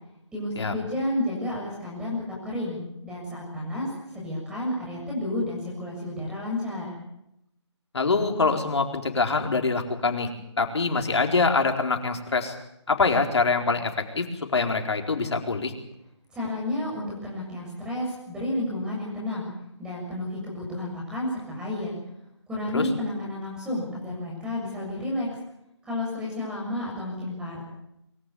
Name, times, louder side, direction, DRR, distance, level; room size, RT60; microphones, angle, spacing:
voice 1, 0.3-6.9 16.3-19.5 19.8-22.0 22.5-25.3 25.8-27.6, left 1 dB, 5° right, -3 dB, 7.1 m, -31 dB
voice 2, 7.9-10.3 10.6-12.5 12.9-13.9 14.2-14.3 14.5-15.7 22.7-22.9, left 4 dB, 65° left, 4 dB, 4.4 m, -24 dB
23.0 x 15.0 x 9.6 m, 0.83 s
hypercardioid pair, 165°, 15 cm